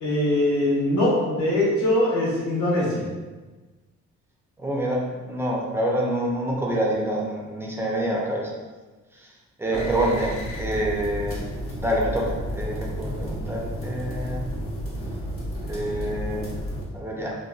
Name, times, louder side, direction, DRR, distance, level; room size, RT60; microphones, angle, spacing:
voice 1, 0.0-3.0 9.7-9.8, left 1 dB, 75° left, -6 dB, 1.1 m, -22 dB
voice 2, 4.6-8.5 9.1-9.3 9.6-10.3 10.6-11.4 11.8-14.5 15.6-16.5 16.9-17.4, right 1 dB, 10° right, -3 dB, 0.5 m, -27 dB
sound 1, 9.7-16.8, equal, 45° left, 0.8 m, -32 dB
2.6 x 2.2 x 2.3 m, 1.3 s
cardioid pair, 90°, 30 cm